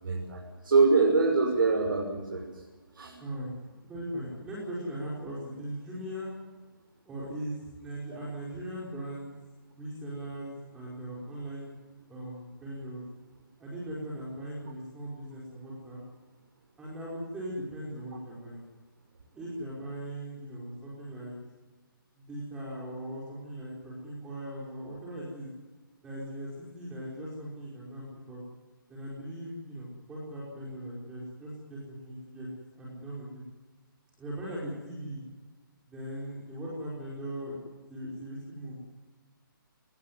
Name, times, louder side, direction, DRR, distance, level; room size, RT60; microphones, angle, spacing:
voice 1, 0.0-2.4 2.9-3.2 8.1-8.2, right 4 dB, 65° right, 1 dB, 6.1 m, -24 dB
voice 2, 3.8-6.3 7.1-9.3 9.7-11.7 12.1-13.0 13.6-16.0 16.8-18.7 19.3-21.3 22.2-25.5 26.0-28.4 28.9-32.5 32.8-33.4 34.2-35.2 35.9-37.6 37.9-38.9, right 1 dB, 5° right, -6 dB, 5.1 m, -39 dB
22.0 x 20.0 x 9.7 m, 1.3 s
hypercardioid pair, 165°, 12 cm